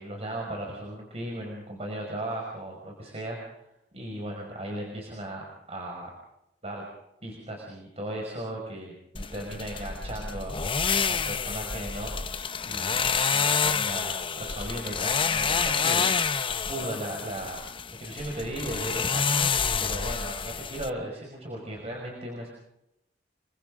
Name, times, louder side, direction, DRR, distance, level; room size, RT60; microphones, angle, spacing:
voice 1, 0.0-3.4 3.9-6.1 6.6-6.8 7.2-10.6 11.1-13.0 13.3-16.1 16.7-19.5 19.8-22.6, right 1 dB, 35° right, 0 dB, 5.6 m, -36 dB
sound 1, 9.2-20.9, left 6 dB, 30° left, 0.8 m, -28 dB
29.5 x 23.5 x 3.8 m, 0.83 s
head